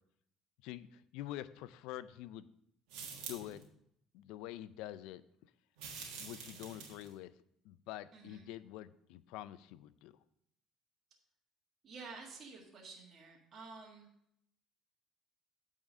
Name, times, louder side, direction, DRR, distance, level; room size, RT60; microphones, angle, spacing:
voice 1, 0.6-2.4 3.3-3.6 4.1-5.2 6.2-7.3 7.6-10.1, left 13 dB, 80° left, 16 dB, 0.4 m, -46 dB
sound 1, 2.9-3.6 5.8-7.1, right 6 dB, 85° right, 1.5 m, -47 dB
voice 2, 8.1-8.4 11.8-14.1, right 4 dB, 45° right, -2 dB, 1.7 m, -51 dB
8.7 x 3.7 x 6.2 m, 0.74 s
cardioid pair, 105°, 0 cm